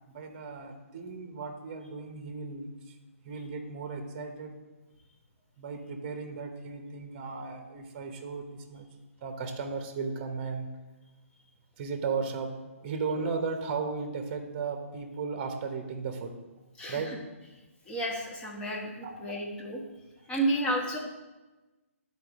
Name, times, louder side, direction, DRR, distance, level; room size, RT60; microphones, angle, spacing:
voice 1, 0.1-3.0 3.2-4.6 5.6-8.9 9.2-10.7 11.8-12.5 12.8-16.3 16.9-17.1 19.0-19.3, right 5 dB, 35° right, 5 dB, 1.0 m, -35 dB
voice 2, 16.8-17.2 17.9-19.8 20.3-21.0, right 1 dB, 10° left, -1 dB, 1.3 m, -31 dB
12.0 x 4.4 x 3.6 m, 1.1 s
figure-of-eight pair, 135°, 8 cm